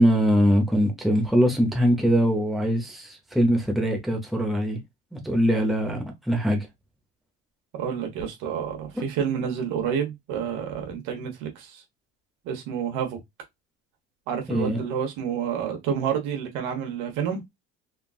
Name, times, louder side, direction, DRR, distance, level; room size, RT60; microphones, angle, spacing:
voice 1, 0.0-4.8 5.1-6.7 9.0-9.1 14.5-14.8, equal, ahead, 0.9 m, -22 dB
voice 2, 7.7-11.8 12.4-13.2 14.3-17.4, right 8 dB, 75° right, 1.2 m, -29 dB
3.7 x 2.3 x 2.4 m
supercardioid pair, 110°, 31 cm